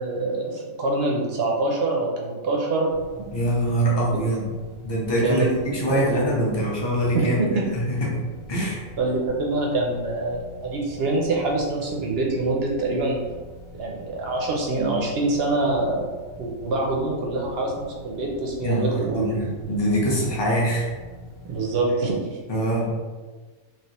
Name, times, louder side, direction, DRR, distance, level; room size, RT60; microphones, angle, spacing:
voice 1, 0.0-2.9 3.2-3.3 5.2-5.5 5.9-6.1 7.1-7.7 9.0-13.2 13.7-16.1 16.4-19.4 21.4-22.4, right 2 dB, 60° right, 0 dB, 0.6 m, -25 dB
sound 1, 2.9-21.8, equal, 80° left, 1.1 m, -44 dB
voice 2, 3.3-4.5 4.8-7.4 7.7-8.2 8.5-8.8 18.6-20.9 22.5-23.1, right 1 dB, 25° left, -5 dB, 0.6 m, -24 dB
3.3 x 2.9 x 2.8 m, 1.3 s
omnidirectional pair, 1.5 m